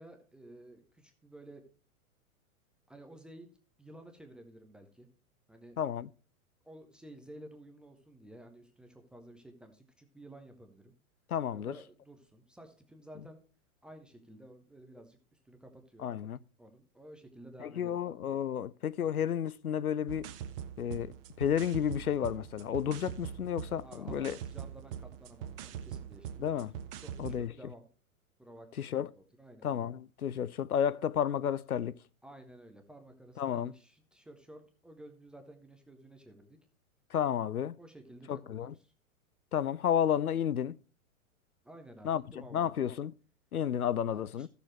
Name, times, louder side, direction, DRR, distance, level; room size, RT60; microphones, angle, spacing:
voice 1, 0.0-1.6 2.9-3.5 3.8-5.1 5.5-5.8 6.6-10.9 11.5-13.4 13.8-15.2 15.4-16.1 16.6-18.1 23.8-26.5 26.9-27.9 28.4-29.1 29.4-29.9 32.2-36.6 37.8-38.9 41.6-43.0 43.7-44.5, right 1 dB, ahead, 0.4 m, -53 dB
voice 2, 5.8-6.1 11.3-11.8 16.0-16.4 17.6-20.3 20.8-24.4 26.4-26.7 27.2-27.5 28.8-29.1 29.6-31.9 33.4-33.7 37.1-37.8 38.3-38.7 39.5-40.8 42.0-42.2 42.5-43.1 43.5-44.5, left 9 dB, 85° left, 0.5 m, -32 dB
sound 1, 20.1-27.5, right 9 dB, 40° right, 0.9 m, -43 dB
14.5 x 6.7 x 3.1 m
figure-of-eight pair, 105°, 42 cm